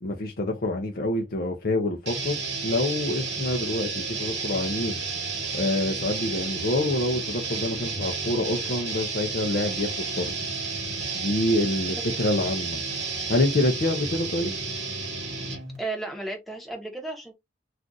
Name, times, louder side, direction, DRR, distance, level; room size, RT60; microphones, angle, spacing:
voice 1, 0.0-2.4 2.6-4.9 5.5-10.3 11.1-12.8 13.3-14.5, left 1 dB, 50° left, 0.5 m, -26 dB
sound 1, 2.0-15.8, right 4 dB, 55° right, 1.1 m, -31 dB
voice 2, 15.8-17.3, right 2 dB, ahead, 0.9 m, -34 dB
2.5 x 2.4 x 3.8 m
head